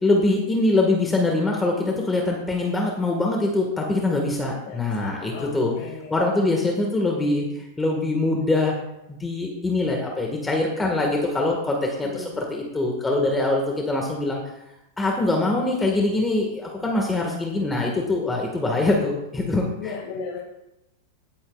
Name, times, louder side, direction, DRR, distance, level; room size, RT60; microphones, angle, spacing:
voice 1, 0.0-5.7 6.1-8.7 9.1-14.4 15.0-19.9, left 2 dB, 10° left, 0 dB, 1.7 m, -23 dB
voice 2, 4.4-6.5 11.8-12.4 19.7-20.4, left 5 dB, 65° left, -3 dB, 2.3 m, -37 dB
16.5 x 8.6 x 2.4 m, 0.90 s
hypercardioid pair, 115°, 0 cm